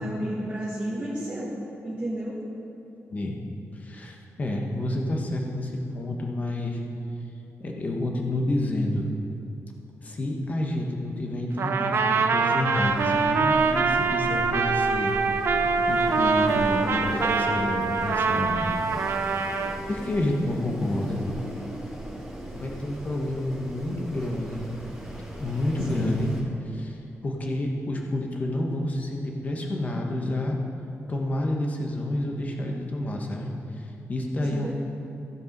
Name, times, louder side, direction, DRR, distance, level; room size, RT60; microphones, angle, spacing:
voice 1, 0.0-1.5 1.8-2.4 25.9-26.2 34.5-34.7, right 1 dB, 25° right, -7 dB, 1.6 m, -32 dB
voice 2, 3.7-6.8 7.6-9.1 10.0-15.1 15.9-18.8 19.9-21.2 22.5-24.7 25.4-26.3 26.6-27.0 27.2-30.6 31.1-34.7, left 1 dB, 30° left, 1 dB, 1.1 m, -29 dB
Trumpet, 11.6-19.8, right 4 dB, 55° right, 0.6 m, -24 dB
Wind, 12.7-26.4, equal, ahead, 2.2 m, -38 dB
15.5 x 5.4 x 5.3 m, 2.9 s
wide cardioid pair, 175°, 5 cm